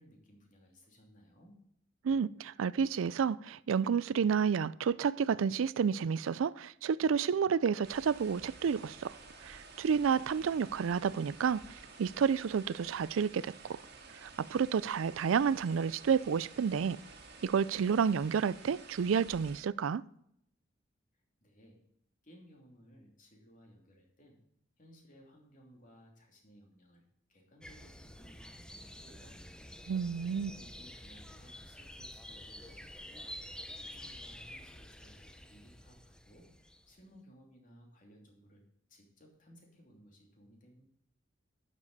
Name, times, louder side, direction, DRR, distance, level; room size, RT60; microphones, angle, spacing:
voice 1, 0.0-1.5 21.4-21.8 22.2-24.4 24.8-27.0 27.3-29.4 30.2-33.3 33.7-38.6 38.9-40.9, equal, 45° left, 2.9 m, -59 dB
voice 2, 2.0-9.2 9.4-13.8 14.2-17.0 17.4-20.0 29.9-30.5, right 6 dB, 85° right, 0.4 m, -30 dB
sound 1, 7.8-19.6, right 4 dB, 55° right, 1.9 m, -52 dB
sound 2, 27.6-37.0, left 1 dB, 5° left, 0.6 m, -49 dB
12.0 x 7.4 x 4.1 m
head